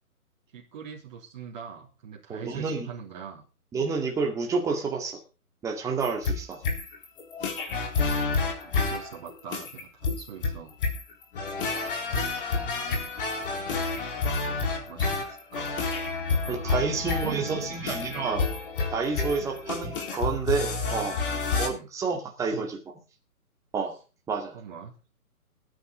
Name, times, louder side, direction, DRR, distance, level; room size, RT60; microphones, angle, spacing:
voice 1, 0.5-3.5 8.4-10.8 14.4-15.8 16.3-17.8 19.4-19.6 21.6-21.9 22.5-22.7 24.5-25.0, right 7 dB, 30° right, -2 dB, 3.1 m, -42 dB
voice 2, 2.3-2.9 3.7-5.2 5.6-6.6 16.5-18.4 18.9-21.2 21.6-22.8 23.7-24.0 24.3-24.6, right 4 dB, 5° right, 2 dB, 2.2 m, -29 dB
sound 1, 6.0-21.7, left 4 dB, 35° left, 4.0 m, -29 dB
20.0 x 9.8 x 3.9 m, 0.33 s
figure-of-eight pair, 140°, 45 cm